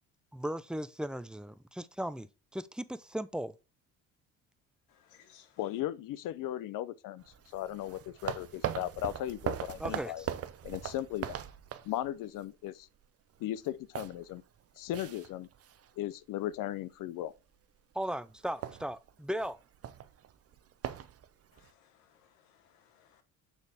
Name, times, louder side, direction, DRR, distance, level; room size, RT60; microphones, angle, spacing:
voice 1, 0.3-3.5 9.8-10.3 17.9-19.6, right 1 dB, ahead, 0.5 m, -37 dB
voice 2, 4.9-5.6 21.5-23.2, left 9 dB, 85° left, 1.2 m, -64 dB
voice 3, 5.6-7.2 7.5-10.2 10.6-11.4 11.8-12.9 13.4-14.4 14.8-15.5 16.0-17.3, left 13 dB, 65° left, 0.6 m, -37 dB
sound 1, 7.2-12.4 12.8-13.0 13.4-16.1 16.4-16.8 17.3-17.7 17.9-18.1 18.3-21.7, right 10 dB, 45° right, 0.7 m, -40 dB
7.3 x 3.9 x 3.5 m
supercardioid pair, 70°, 35 cm